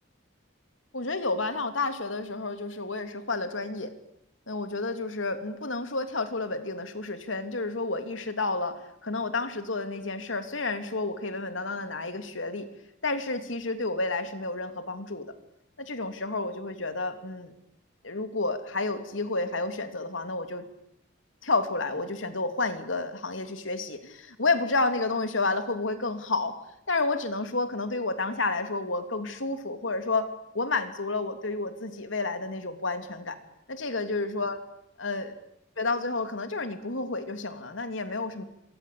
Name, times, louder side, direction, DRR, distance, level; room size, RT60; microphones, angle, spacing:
voice 1, 0.9-3.9 4.5-12.7 13.0-15.3 15.8-17.5 18.0-20.6 21.4-26.6 26.9-30.3 30.5-33.4 33.7-34.6 35.0-35.3 35.8-38.4, left 3 dB, 85° left, 8 dB, 3.0 m, -30 dB
27.0 x 23.0 x 8.6 m, 0.78 s
head